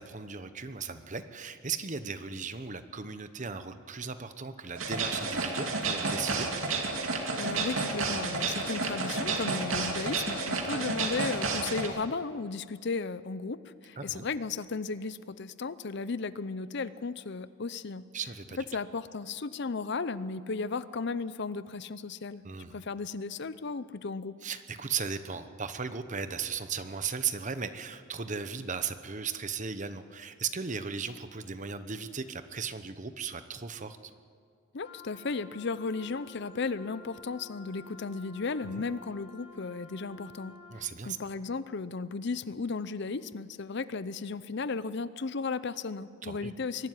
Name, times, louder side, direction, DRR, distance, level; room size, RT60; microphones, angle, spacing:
voice 1, 0.0-6.5 10.6-10.8 14.0-14.3 18.1-18.6 22.4-22.7 24.4-34.0 38.6-38.8 40.7-41.2 46.2-46.5, right 6 dB, 35° right, 10 dB, 1.0 m, -36 dB
sound 1, 4.8-11.9, right 3 dB, 80° right, 2.5 m, -31 dB
voice 2, 7.4-18.0 18.7-22.4 22.7-24.4 34.7-40.6 41.0-46.9, left 4 dB, 55° left, 15 dB, 0.6 m, -35 dB
Wind instrument woodwind instrument, 34.8-40.8, left 3 dB, 30° left, 4.3 m, -51 dB
22.5 x 12.5 x 9.9 m, 2.2 s
head